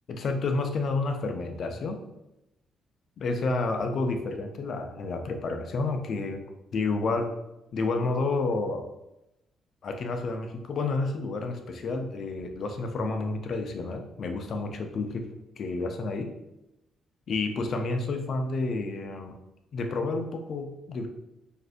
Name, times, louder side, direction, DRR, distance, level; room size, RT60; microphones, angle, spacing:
voice 1, 0.1-2.0 3.2-6.4 6.7-7.3 7.7-8.8 9.8-15.3 15.6-16.3 17.3-19.4 19.7-21.1, left 3 dB, 60° left, 5 dB, 0.3 m, -30 dB
2.4 x 2.1 x 2.4 m, 0.90 s
cardioid pair, 90°, 0 cm